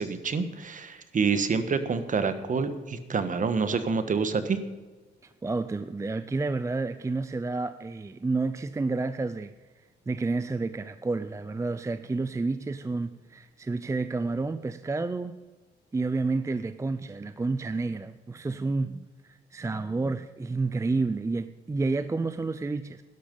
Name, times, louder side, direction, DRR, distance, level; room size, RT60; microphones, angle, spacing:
voice 1, 0.0-4.6, right 5 dB, 40° right, 1.4 m, -27 dB
voice 2, 5.2-9.5 10.1-15.4 15.9-23.0, right 3 dB, 15° right, 0.5 m, -30 dB
12.0 x 11.5 x 5.4 m
cardioid pair, 90°, 20 cm